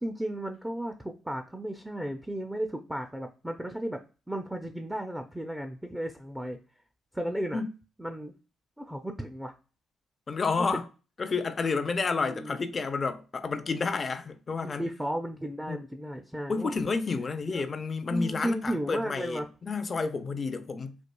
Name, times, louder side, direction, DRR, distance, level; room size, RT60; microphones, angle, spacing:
voice 1, 0.0-4.0 4.3-6.6 7.1-7.6 8.0-8.3 8.8-9.5 10.6-10.7 12.1-12.6 14.6-16.7 17.5-17.6 18.1-19.5, right 1 dB, 10° right, 0.5 m, -34 dB
voice 2, 10.3-10.9 11.2-14.8 15.7-15.8 16.5-21.0, left 4 dB, 45° left, 0.5 m, -30 dB
4.3 x 2.3 x 2.2 m
supercardioid pair, 60°, 0 cm